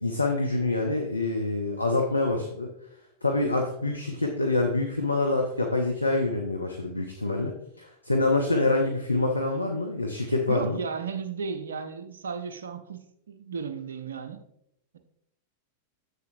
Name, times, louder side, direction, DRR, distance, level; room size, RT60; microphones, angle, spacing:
voice 1, 0.0-2.7 3.2-10.8, left 2 dB, 85° left, 2 dB, 0.7 m, -26 dB
voice 2, 10.5-14.4, right 6 dB, 65° right, 9 dB, 0.6 m, -34 dB
7.4 x 6.5 x 2.6 m, 0.76 s
figure-of-eight pair, 90°, 0 cm